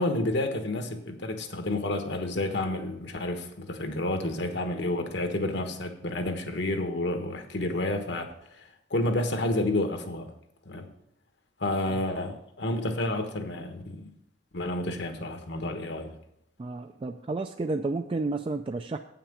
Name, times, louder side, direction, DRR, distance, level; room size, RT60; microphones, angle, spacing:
voice 1, 0.0-10.3 10.6-10.9 11.6-14.1 14.5-16.2, left 1 dB, 65° left, 6 dB, 1.3 m, -30 dB
voice 2, 16.6-19.0, right 3 dB, 30° right, 6 dB, 0.3 m, -31 dB
8.5 x 5.9 x 7.1 m, 0.78 s
head